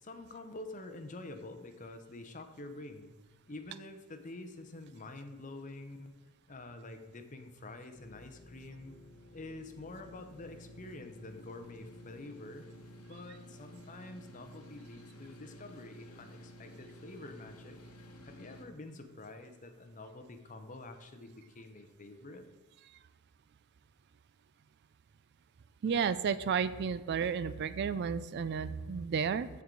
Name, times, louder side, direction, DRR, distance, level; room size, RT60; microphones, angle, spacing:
voice 1, 0.0-3.2 3.5-6.1 6.5-8.9 9.3-12.7 13.1-17.8 18.2-22.4, left 2 dB, 35° left, 7 dB, 0.8 m, -47 dB
sound 1, 7.9-18.7, equal, 80° left, 1.0 m, -53 dB
voice 2, 25.8-29.5, right 6 dB, 50° right, 15 dB, 0.3 m, -32 dB
14.0 x 4.7 x 3.9 m, 1.3 s
head